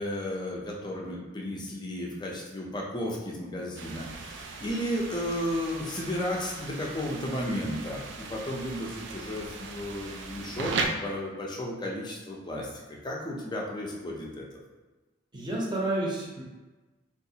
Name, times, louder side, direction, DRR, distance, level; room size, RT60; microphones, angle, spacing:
voice 1, 0.0-14.5, left 1 dB, 20° left, -2 dB, 0.5 m, -34 dB
sound 1, 3.8-10.9, right 4 dB, 65° right, 0.3 m, -38 dB
voice 2, 15.3-16.4, right 1 dB, 20° right, -4 dB, 0.7 m, -30 dB
3.7 x 2.4 x 2.7 m, 1.2 s
head